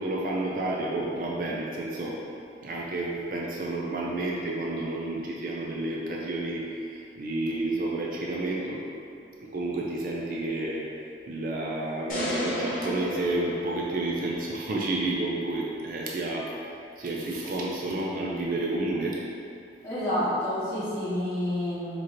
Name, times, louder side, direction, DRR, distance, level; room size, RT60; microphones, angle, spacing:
voice 1, 0.0-2.2 2.6-8.8 9.4-10.9 11.3-19.2, right 2 dB, 50° right, -3 dB, 0.4 m, -30 dB
sound 1, 12.1-14.4, left 1 dB, 50° left, 0.8 m, -33 dB
voice 2, 19.8-22.0, left 1 dB, 20° left, -12 dB, 1.3 m, -29 dB
4.7 x 3.0 x 3.0 m, 2.6 s
head